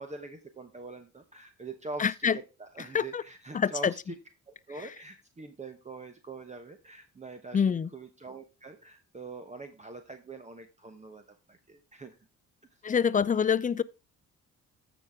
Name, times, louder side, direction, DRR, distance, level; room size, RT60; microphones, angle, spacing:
voice 1, 0.0-4.2 4.5-11.2 11.5-12.2, right 3 dB, 25° right, 1.0 m, -44 dB
voice 2, 2.0-2.4 2.9-3.2 3.5-3.9 7.5-7.9 12.8-13.8, left 7 dB, 25° left, 0.5 m, -26 dB
14.0 x 6.0 x 3.5 m
cardioid pair, 90°, 30 cm